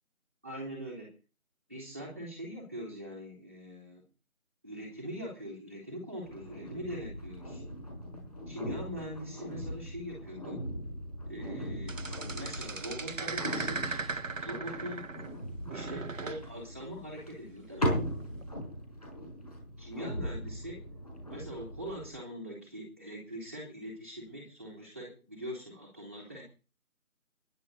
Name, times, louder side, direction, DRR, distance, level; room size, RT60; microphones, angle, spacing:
voice 1, 0.4-1.1 1.7-4.0 4.6-7.6 8.5-10.5 11.3-12.0 12.3-13.9 14.4-15.1 15.7-18.0 19.8-20.8 21.3-26.4, equal, 10° right, -4 dB, 3.4 m, -42 dB
sound 1, 6.2-22.2, equal, 25° left, 5.3 m, -39 dB
sound 2, 11.9-15.4 15.7-16.4 18.2-18.4, right 4 dB, 65° right, 0.9 m, -38 dB
17.5 x 11.0 x 4.1 m, 0.32 s
figure-of-eight pair, 180°, 42 cm